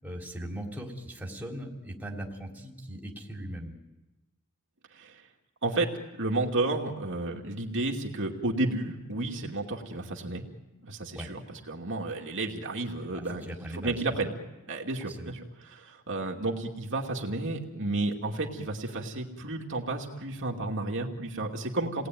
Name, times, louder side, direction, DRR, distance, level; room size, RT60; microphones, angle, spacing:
voice 1, 0.0-3.7 11.1-11.3 13.1-14.0 15.1-15.3, right 1 dB, 5° right, -1 dB, 3.6 m, -39 dB
voice 2, 6.2-10.4 10.8-14.3 14.7-15.4 15.7-22.1, right 2 dB, 60° right, 0 dB, 2.6 m, -32 dB
30.0 x 19.5 x 9.4 m, 1.1 s
head